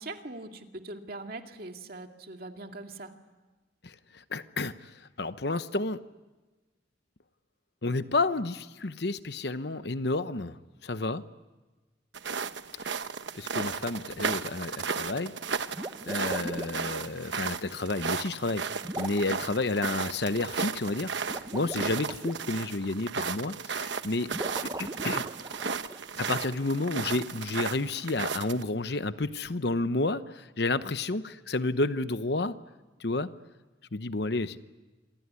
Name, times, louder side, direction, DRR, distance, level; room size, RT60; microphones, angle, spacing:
voice 1, 0.0-3.1, right 2 dB, 50° right, 4 dB, 2.2 m, -41 dB
voice 2, 3.8-4.9 5.2-6.0 7.8-10.6 10.8-11.2 13.3-15.3 16.1-21.1 21.5-24.3 24.8-25.2 26.2-32.6 33.0-33.3 33.9-34.6, left 2 dB, 60° left, 12 dB, 0.9 m, -30 dB
sound 1, 12.1-28.6, right 5 dB, 75° right, 1.1 m, -35 dB
sound 2, 15.7-16.9 18.8-19.4 21.2-22.3 24.3-26.0, right 1 dB, 20° right, 1.2 m, -38 dB
27.5 x 22.5 x 9.7 m, 1.2 s
head